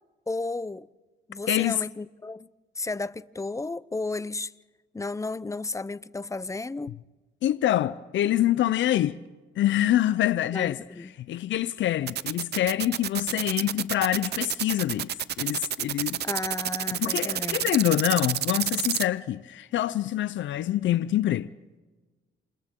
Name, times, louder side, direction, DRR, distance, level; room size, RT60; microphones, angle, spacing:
voice 1, 0.3-0.9 1.3-2.5 2.8-4.5 4.9-7.0 10.5-11.1 16.2-17.7, left 3 dB, 15° left, 0.6 m, -33 dB
voice 2, 1.5-1.8 7.4-9.2 9.6-10.8 11.2-16.2 16.9-21.5, left 13 dB, 70° left, 0.6 m, -25 dB
sound 1, 12.1-19.0, right 11 dB, 55° right, 0.6 m, -29 dB
29.0 x 28.5 x 3.8 m
cardioid pair, 90°, 20 cm